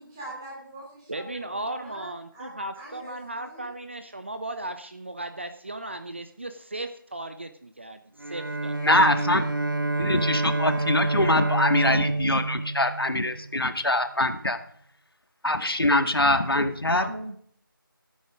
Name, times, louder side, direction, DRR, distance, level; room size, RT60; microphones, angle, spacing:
voice 1, 0.0-3.7, right 1 dB, 10° right, -5 dB, 3.4 m, -44 dB
voice 2, 1.1-8.8 16.9-17.4, right 2 dB, 30° right, 9 dB, 0.8 m, -36 dB
Bowed string instrument, 8.2-13.6, right 2 dB, 60° right, 1.5 m, -28 dB
voice 3, 8.8-9.5 10.0-14.6 15.4-17.1, left 1 dB, 85° left, 8 dB, 1.9 m, -23 dB
16.5 x 9.7 x 5.1 m, 0.62 s
figure-of-eight pair, 170°, 12 cm